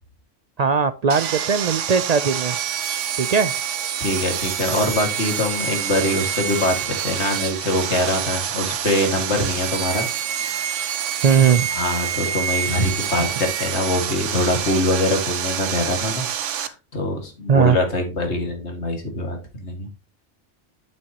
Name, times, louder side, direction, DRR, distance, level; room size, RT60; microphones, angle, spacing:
voice 1, 0.6-2.6 3.2-3.6 11.2-11.7 13.2-13.3 17.5-17.8, right 6 dB, 65° right, 13 dB, 0.4 m, -18 dB
Sawing, 1.1-16.7, right 9 dB, 85° right, 1.1 m, -27 dB
voice 2, 4.0-10.1 11.7-16.3 16.5-19.9, left 1 dB, 65° left, 3 dB, 2.4 m, -23 dB
9.2 x 7.7 x 2.9 m, 0.30 s
omnidirectional pair, 1.2 m